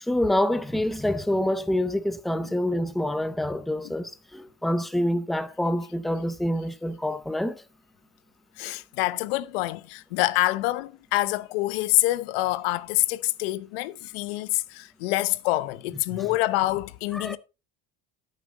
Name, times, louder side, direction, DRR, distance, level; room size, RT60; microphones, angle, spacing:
voice 1, 0.0-7.6 16.1-16.3 17.1-17.4, left 1 dB, ahead, 0.6 m, -27 dB
voice 2, 8.6-17.4, left 18 dB, 85° left, 0.8 m, -26 dB
10.0 x 8.5 x 4.1 m
supercardioid pair, 130°, 29 cm